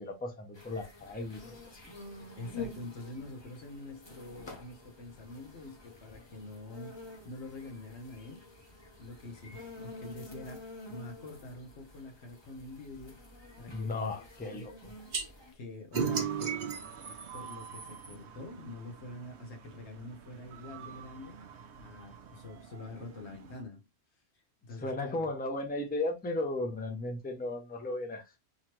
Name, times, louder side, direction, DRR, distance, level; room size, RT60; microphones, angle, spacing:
voice 1, 0.0-2.0 13.7-14.9 24.8-28.2, left 2 dB, 10° left, 0.6 m, -36 dB
sound 1, 0.5-15.5, left 3 dB, 25° left, 0.9 m, -48 dB
voice 2, 2.4-7.0 7.2-8.5 9.0-13.2 13.6-14.7 15.5-16.6 17.3-21.4 21.8-23.8 24.6-25.3, left 2 dB, 85° left, 1.3 m, -46 dB
sound 2, 15.1-15.2 15.9-18.1, right 6 dB, 50° right, 0.8 m, -34 dB
sound 3, 15.9-23.6, right 7 dB, 85° right, 1.0 m, -48 dB
3.9 x 3.0 x 3.0 m
omnidirectional pair, 1.1 m